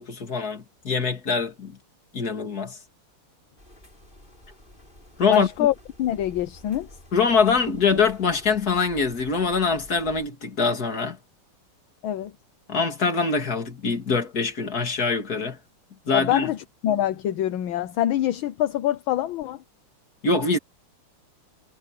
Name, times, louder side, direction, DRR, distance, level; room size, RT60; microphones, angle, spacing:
voice 1, 0.0-1.8 2.1-2.8 5.2-5.5 7.1-11.2 12.7-15.6 16.1-16.5 20.2-20.6, left 5 dB, 45° left, 3.1 m, -24 dB
sound 1, 3.6-10.3, left 1 dB, 20° left, 6.2 m, -49 dB
voice 2, 5.3-6.9 12.0-12.3 16.1-19.6, left 12 dB, 75° left, 1.7 m, -25 dB
omnidirectional pair, 2.3 m